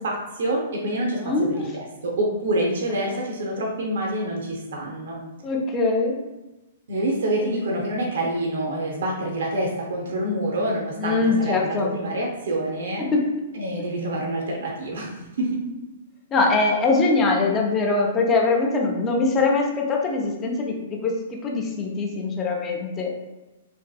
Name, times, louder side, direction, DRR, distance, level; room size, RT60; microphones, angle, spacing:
voice 1, 0.0-5.2 6.9-13.1 13.5-15.6, right 1 dB, 70° right, -1 dB, 0.5 m, -27 dB
voice 2, 5.4-6.2 11.0-11.9 13.0-13.2 16.3-23.1, left 3 dB, 25° left, 0 dB, 0.5 m, -22 dB
2.6 x 2.5 x 2.3 m, 1.0 s
hypercardioid pair, 120°, 0 cm